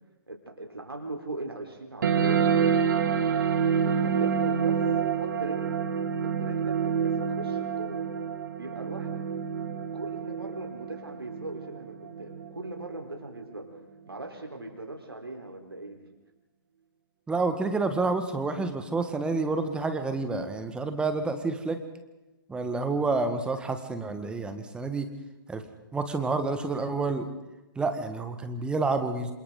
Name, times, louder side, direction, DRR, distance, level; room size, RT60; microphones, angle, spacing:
voice 1, 0.3-2.9 3.8-4.8 5.1-5.8 6.2-8.1 8.6-9.2 9.7-13.8 14.1-16.0, right 2 dB, 80° right, 2 dB, 4.0 m, -40 dB
sound 1, 2.0-13.0, right 7 dB, 55° right, 1.8 m, -27 dB
voice 2, 17.3-21.8 22.5-25.1 25.5-25.6 25.9-27.2 27.7-29.3, right 3 dB, 5° right, 8 dB, 1.7 m, -29 dB
27.0 x 27.0 x 3.9 m, 1.0 s
figure-of-eight pair, 120°, 12 cm